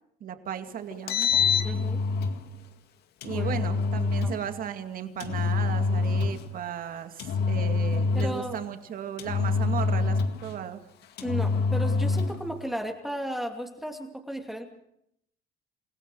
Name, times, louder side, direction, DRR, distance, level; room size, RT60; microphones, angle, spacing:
voice 1, 0.2-1.3 3.2-10.8, right 9 dB, 55° right, 8 dB, 2.4 m, -35 dB
Engine, 0.9-2.4 3.2-4.4 5.2-6.5 7.2-8.5 9.2-10.5 11.2-12.4, left 4 dB, 75° left, 2.0 m, -26 dB
voice 2, 1.6-2.0 3.3-3.5 4.2-4.3 8.1-8.6 11.2-14.7, equal, ahead, 3 dB, 2.6 m, -34 dB
27.5 x 17.0 x 6.3 m, 0.74 s
cardioid pair, 110°, 17 cm